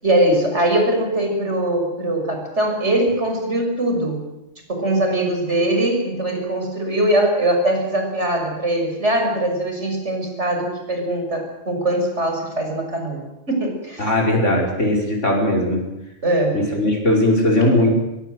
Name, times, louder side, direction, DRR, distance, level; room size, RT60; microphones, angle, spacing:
voice 1, 0.0-4.2 4.7-14.1 16.2-16.6, right 1 dB, 65° right, 3 dB, 6.3 m, -21 dB
voice 2, 14.0-15.9 16.5-18.0, left 1 dB, 75° left, 0 dB, 5.4 m, -18 dB
22.5 x 21.5 x 7.9 m, 0.90 s
omnidirectional pair, 1.3 m